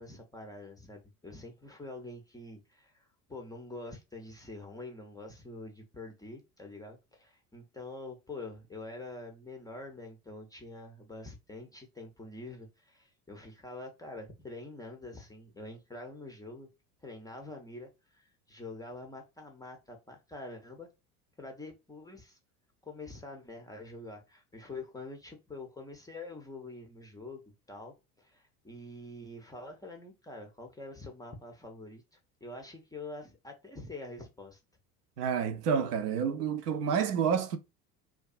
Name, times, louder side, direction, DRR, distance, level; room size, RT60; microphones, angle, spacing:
voice 1, 0.0-16.7 17.0-20.9 21.4-22.4 22.8-27.4 27.7-34.6, left 2 dB, 10° left, 0.4 m, -46 dB
voice 2, 35.2-37.6, right 7 dB, 75° right, 0.6 m, -29 dB
2.5 x 2.3 x 2.4 m
hypercardioid pair, 75°, 47 cm